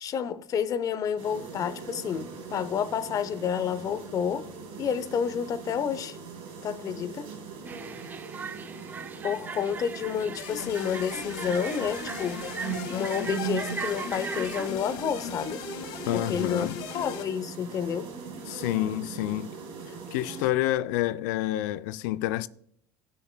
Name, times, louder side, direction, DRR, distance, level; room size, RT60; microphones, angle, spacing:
voice 1, 0.0-4.5 4.8-6.2 6.6-7.3 9.2-12.5 12.9-15.6 16.1-16.7 16.9-18.1, left 7 dB, 40° left, 0.6 m, -30 dB
sound 1, 1.2-20.5, right 6 dB, 70° right, 2.6 m, -40 dB
sound 2, 7.7-14.7, right 5 dB, 20° right, 0.4 m, -39 dB
sound 3, 10.4-17.2, left 7 dB, 65° left, 1.1 m, -38 dB
voice 2, 16.1-16.8 18.5-19.5 20.1-22.5, left 15 dB, 85° left, 0.4 m, -28 dB
19.0 x 6.7 x 2.2 m
supercardioid pair, 125°, 10 cm